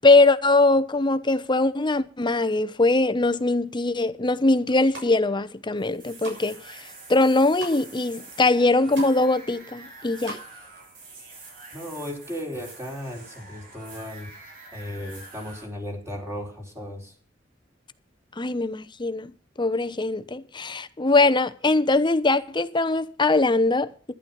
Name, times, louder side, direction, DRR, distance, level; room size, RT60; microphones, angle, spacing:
voice 1, 0.0-6.8 7.1-10.4 18.4-19.3 19.6-24.1, left 2 dB, 25° left, 0.8 m, -21 dB
sound 1, 4.7-5.1 5.7-6.4 6.8-7.8 8.3-8.4 8.6-9.2 9.5-10.4 10.7-10.8, right 2 dB, 80° right, 7.0 m, -39 dB
sound 2, 5.8-15.7, right 2 dB, 50° right, 4.6 m, -46 dB
voice 2, 11.7-14.3 14.7-17.1, equal, 15° right, 4.2 m, -35 dB
12.0 x 11.0 x 5.5 m
head